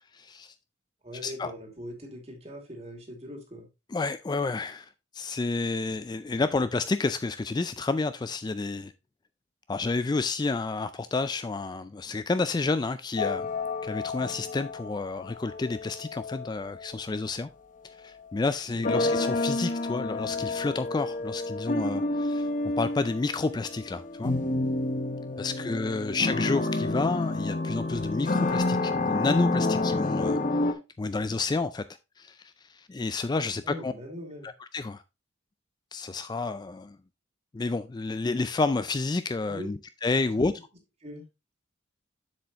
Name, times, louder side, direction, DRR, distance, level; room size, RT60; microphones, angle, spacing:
voice 1, 0.1-0.5 1.2-1.5 3.9-8.9 9.7-13.5 13.8-17.5 17.8-22.5 22.8-24.3 25.4-31.8 32.2-33.9 34.7-35.0 35.9-37.0 37.5-40.5, left 3 dB, 20° left, 0.3 m, -30 dB
voice 2, 1.0-3.7 18.7-19.1 25.6-26.3 33.6-34.5 39.4-39.7 40.1-40.5 41.0-41.2, equal, 30° right, 2.3 m, -42 dB
sound 1, 13.2-16.9 18.8-30.7, left 2 dB, 40° left, 0.8 m, -29 dB
7.6 x 6.9 x 2.9 m
head